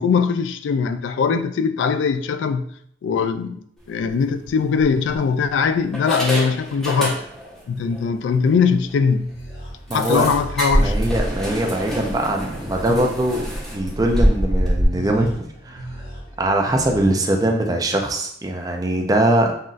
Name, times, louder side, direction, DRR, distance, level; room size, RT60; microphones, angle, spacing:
voice 1, 0.0-2.6 3.0-3.6 3.9-7.2 7.7-9.3 9.9-11.0, left 5 dB, 85° left, 0.3 m, -21 dB
sound 1, 3.9-4.1 4.8-5.5 5.9-7.6 7.9-8.1 8.5-8.6 8.9-9.0 9.9-14.8, equal, 5° left, 0.8 m, -24 dB
sound 2, 8.8-17.1, right 1 dB, 60° left, 1.4 m, -38 dB
voice 2, 9.9-10.3 10.8-13.4 13.7-15.9 16.4-19.5, right 1 dB, 20° right, 0.4 m, -21 dB
5.6 x 2.5 x 2.5 m
head